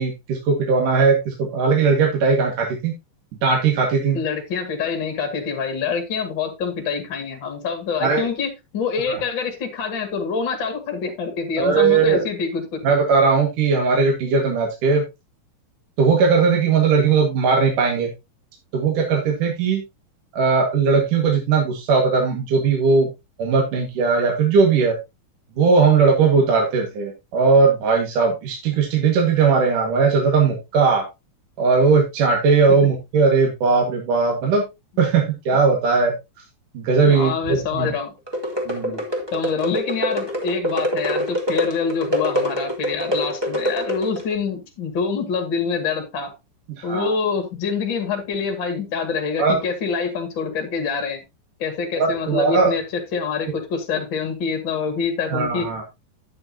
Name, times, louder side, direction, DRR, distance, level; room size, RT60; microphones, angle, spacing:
voice 1, 0.0-2.9 3.4-4.2 8.0-8.3 9.1-9.2 11.6-12.2 12.8-15.0 16.0-18.1 18.7-19.8 20.3-23.1 23.4-24.9 25.6-31.0 31.6-34.6 35.0-36.1 36.7-37.9 38.7-39.0 46.9-47.1 49.4-49.6 52.0-52.7 55.3-55.8, right 5 dB, 65° right, 0 dB, 3.4 m, -18 dB
voice 2, 4.1-12.8 37.0-38.1 38.9-39.0 39.3-46.3 46.8-51.2 51.6-55.8, left 5 dB, 35° left, 4 dB, 2.5 m, -26 dB
sound 1, 38.3-44.3, equal, 10° right, 2.1 m, -25 dB
10.5 x 9.4 x 2.9 m, 0.23 s
omnidirectional pair, 4.2 m